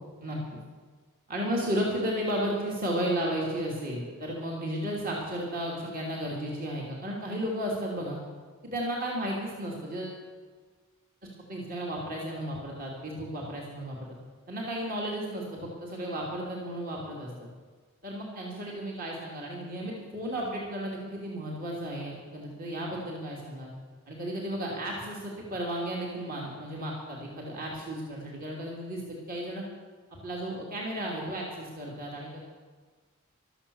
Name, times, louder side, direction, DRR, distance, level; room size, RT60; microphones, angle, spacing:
voice 1, 1.3-8.2 8.6-10.2 11.5-14.0 14.5-17.5 18.0-23.7 24.1-29.0 29.3-29.6 30.2-32.4, equal, 40° right, -2 dB, 2.9 m, -33 dB
14.0 x 13.0 x 7.1 m, 1.4 s
head